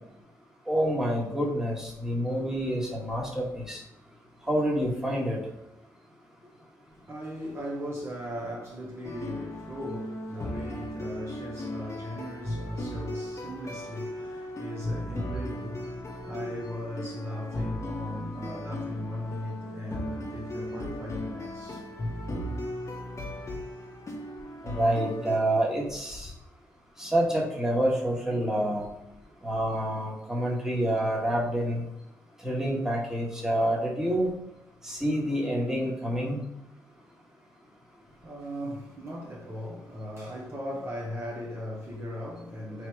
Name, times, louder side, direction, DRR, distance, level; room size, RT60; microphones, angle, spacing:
voice 1, 0.7-3.8 4.5-5.4 24.6-26.3 27.0-28.9 29.4-31.8 32.4-34.3 34.8-36.4, right 1 dB, 5° right, 1.6 m, -27 dB
voice 2, 7.1-22.0 22.3-22.4 38.2-42.9, equal, 35° right, 1.1 m, -38 dB
sound 1, 9.0-25.4, left 1 dB, 40° left, 0.9 m, -36 dB
3.4 x 2.8 x 4.7 m
supercardioid pair, 60°, 8 cm